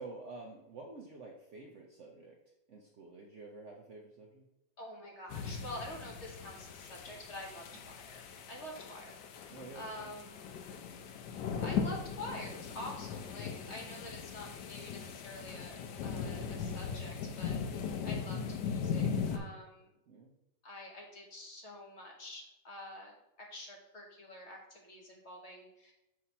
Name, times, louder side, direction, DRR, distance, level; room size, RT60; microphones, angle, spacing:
voice 1, 0.0-2.4 2.7-4.5 7.7-7.8 9.5-10.1 20.1-20.3, right 3 dB, 60° right, 0 dB, 0.8 m, -49 dB
voice 2, 4.8-8.2 8.5-10.6 11.5-19.9 20.6-25.9, left 1 dB, 45° left, -1 dB, 1.2 m, -47 dB
sound 1, 5.3-19.4, left 6 dB, 75° left, 1.2 m, -39 dB
6.2 x 2.9 x 5.5 m, 0.93 s
omnidirectional pair, 1.9 m